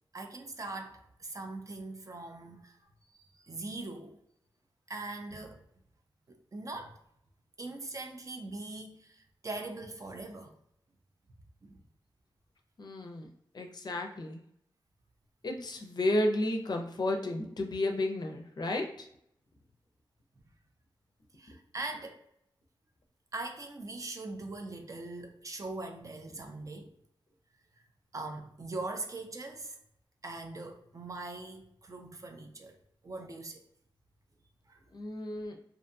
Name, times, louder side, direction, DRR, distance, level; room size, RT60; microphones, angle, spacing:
voice 1, 0.1-2.8 3.1-4.2 4.9-5.6 6.3-7.0 7.6-10.5 11.6-11.8 21.3-22.2 23.3-26.9 28.1-29.8 30.2-32.8 33.0-33.7 34.7-34.8, right 2 dB, 40° right, 0.4 m, -41 dB
voice 2, 12.8-13.3 13.5-14.4 15.4-19.1 34.9-35.6, left 1 dB, 50° left, 0.4 m, -32 dB
2.6 x 2.2 x 2.6 m
wide cardioid pair, 100°, 9 cm